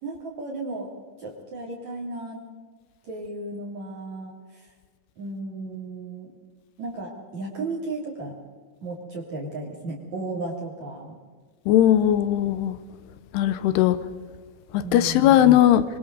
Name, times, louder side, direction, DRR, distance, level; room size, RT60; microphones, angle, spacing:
voice 1, 0.0-0.9 1.2-2.4 3.0-4.7 5.2-6.3 6.8-8.3 8.8-11.1 14.8-15.4, right 2 dB, 40° right, -3 dB, 3.9 m, -34 dB
voice 2, 11.7-12.8 13.3-14.0 14.7-15.8, left 12 dB, 75° left, 12 dB, 2.6 m, -18 dB
27.0 x 24.0 x 4.1 m, 1.5 s
omnidirectional pair, 5.5 m